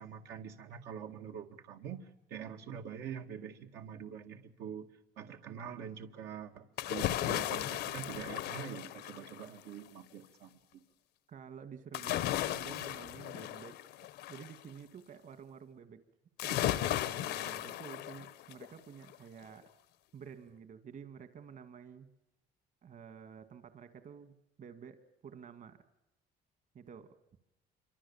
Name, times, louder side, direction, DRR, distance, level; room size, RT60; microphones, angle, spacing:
voice 1, 0.0-4.9 5.2-10.8, right 8 dB, 80° right, 3 dB, 2.1 m, -45 dB
sound 1, 6.8-9.6 11.9-14.6 16.4-18.7 19.1-19.2, left 13 dB, 80° left, 1.0 m, -36 dB
voice 2, 11.3-13.8 14.3-16.0 16.4-19.7 20.1-22.1 22.8-25.8 26.7-27.2, right 7 dB, 50° right, 10 dB, 2.3 m, -50 dB
27.5 x 25.0 x 7.3 m, 0.94 s
cardioid pair, 110°, 17 cm